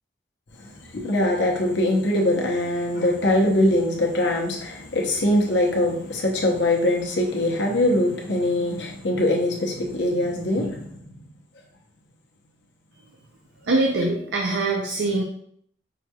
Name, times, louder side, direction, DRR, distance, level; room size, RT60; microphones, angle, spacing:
voice 1, 0.6-10.9, left 1 dB, 70° left, 0.9 m, -22 dB
voice 2, 13.6-15.2, right 2 dB, 70° right, 0.5 m, -23 dB
5.7 x 2.4 x 2.8 m
head